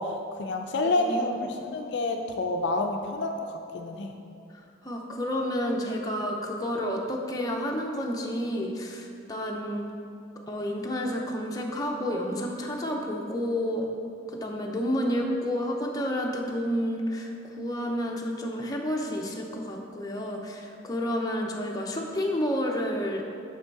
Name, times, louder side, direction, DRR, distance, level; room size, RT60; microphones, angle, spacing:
voice 1, 0.0-4.1, left 2 dB, 60° left, 4 dB, 0.4 m, -29 dB
voice 2, 0.8-1.4 4.5-9.9 10.5-13.9 14.3-23.2, equal, 20° left, 0 dB, 0.6 m, -30 dB
6.1 x 5.6 x 4.6 m, 2.4 s
head